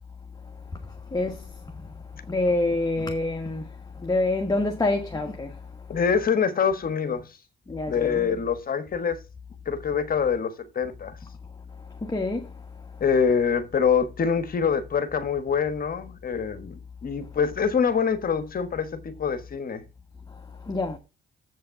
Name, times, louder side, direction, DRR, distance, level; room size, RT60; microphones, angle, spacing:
voice 1, 1.1-1.4 2.3-3.7 4.0-5.5 7.7-8.2 12.1-12.5 20.7-21.0, left 2 dB, 20° left, 1.3 m, -26 dB
voice 2, 5.9-7.4 7.9-9.2 9.6-11.1 13.0-19.9, left 6 dB, 45° left, 1.3 m, -25 dB
7.9 x 5.3 x 5.7 m
cardioid pair, 90°, 20 cm